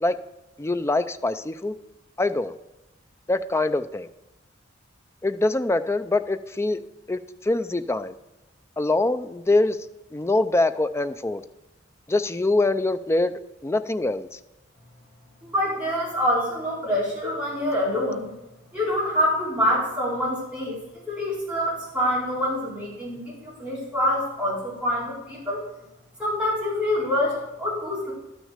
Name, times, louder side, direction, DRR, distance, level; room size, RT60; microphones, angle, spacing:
voice 1, 0.6-1.7 2.2-2.5 3.3-4.1 5.2-6.8 7.1-8.2 8.8-9.8 10.1-11.4 12.1-13.3 13.6-14.4, left 2 dB, 15° left, 10 dB, 0.4 m, -24 dB
voice 2, 15.4-18.3 18.7-20.8 21.1-25.6 26.2-28.1, left 1 dB, 5° right, -8 dB, 4.6 m, -26 dB
12.0 x 6.3 x 6.6 m, 0.95 s
head